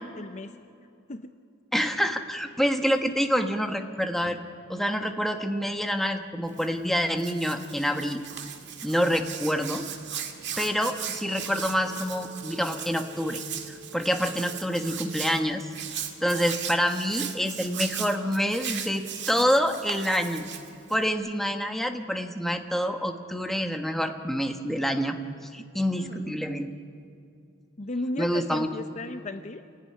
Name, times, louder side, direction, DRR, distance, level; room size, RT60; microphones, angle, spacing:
voice 1, 0.2-0.6 1.1-1.3 25.9-26.5 27.8-29.6, left 2 dB, 35° left, 8 dB, 0.7 m, -35 dB
voice 2, 1.7-4.4 4.7-8.2 8.8-9.8 10.6-13.4 13.7-15.7 16.2-20.5 20.9-25.2 25.5-26.7 28.2-28.7, equal, ahead, 5 dB, 1.2 m, -27 dB
Hands, 6.4-21.1, right 8 dB, 55° right, 1.9 m, -38 dB
sound 1, 10.6-15.6, right 2 dB, 30° right, 3.0 m, -50 dB
26.5 x 17.0 x 9.9 m, 2.5 s
head